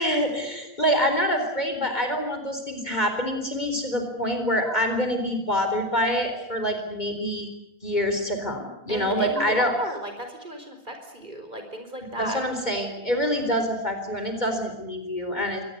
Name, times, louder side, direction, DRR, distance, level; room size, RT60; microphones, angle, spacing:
voice 1, 0.0-7.5 7.8-9.7 12.2-15.6, equal, 30° left, 6 dB, 4.2 m, -26 dB
voice 2, 8.9-12.4, right 1 dB, 35° right, 5 dB, 4.9 m, -35 dB
24.5 x 19.0 x 9.7 m, 0.83 s
omnidirectional pair, 1.5 m